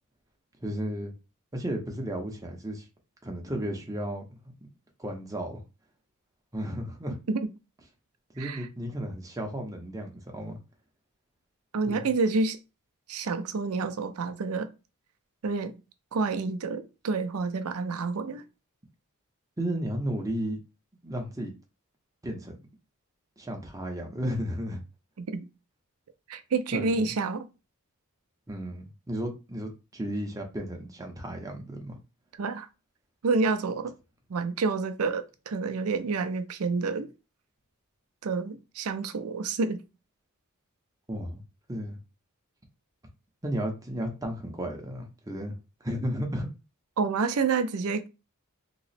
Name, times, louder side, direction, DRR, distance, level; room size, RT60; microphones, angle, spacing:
voice 1, 0.6-1.1 1.5-2.8 3.2-4.2 5.0-5.6 6.5-7.2 8.3-10.6 11.9-12.1 19.6-20.6 21.0-21.5 22.2-22.6 23.4-24.8 26.7-27.1 28.5-32.0 41.1-41.4 41.7-42.0 43.4-45.5 45.8-46.5, equal, 15° right, 0.7 m, -33 dB
voice 2, 11.7-12.6 13.1-14.7 15.4-15.8 16.1-18.4 25.2-25.5 26.3-27.4 32.4-32.7 33.2-33.9 34.3-37.1 38.2-39.8 47.0-48.1, right 4 dB, 75° right, 0.5 m, -28 dB
3.0 x 2.0 x 4.0 m
head